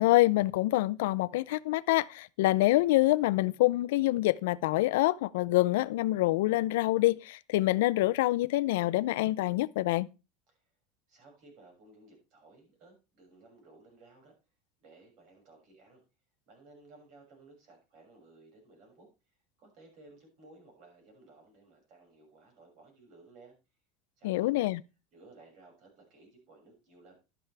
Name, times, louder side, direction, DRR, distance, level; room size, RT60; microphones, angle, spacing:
voice 1, 0.0-10.1 24.2-24.8, left 18 dB, 85° left, 0.4 m, -26 dB
voice 2, 11.1-14.3 14.8-16.0 16.5-19.1 19.6-23.5 24.2-24.7 25.1-27.2, right 3 dB, 50° right, 6.2 m, -57 dB
11.5 x 9.1 x 3.3 m
supercardioid pair, 150°, 0 cm